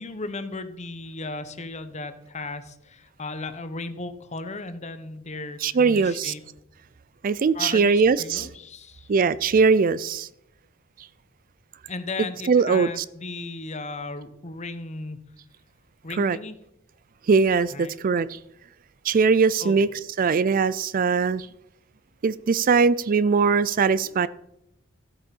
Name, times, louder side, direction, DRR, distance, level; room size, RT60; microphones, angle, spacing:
voice 1, 0.0-6.4 7.5-9.1 11.9-15.2 16.0-16.6 17.7-17.9 19.6-19.8, left 3 dB, 35° left, 1.0 m, -36 dB
voice 2, 5.6-6.3 7.2-8.5 9.1-10.3 12.5-13.0 16.2-16.4 17.3-18.4 19.0-19.9 20.2-21.5 22.2-24.3, right 5 dB, 40° right, 0.4 m, -21 dB
14.5 x 8.3 x 5.3 m
head